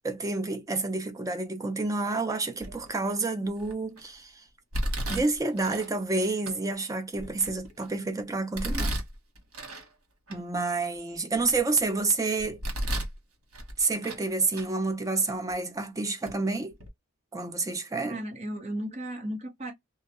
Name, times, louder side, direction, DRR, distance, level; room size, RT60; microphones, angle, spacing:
voice 1, 0.0-4.4 5.1-9.0 10.3-12.6 13.8-16.7 17.3-18.2, right 3 dB, 15° right, 0.4 m, -29 dB
Domestic sounds home sounds, 2.6-3.0 3.6-4.0 4.7-5.9 6.5-6.6 7.1-7.9 8.5-9.9 10.3-10.4 11.0-11.9 12.4-13.2 13.5-14.3 14.5-14.7 15.5-15.6 16.2-16.4 16.7-16.9, right 1 dB, 80° right, 1.1 m, -33 dB
voice 2, 18.0-19.7, equal, 30° right, 0.9 m, -35 dB
2.3 x 2.1 x 2.8 m
head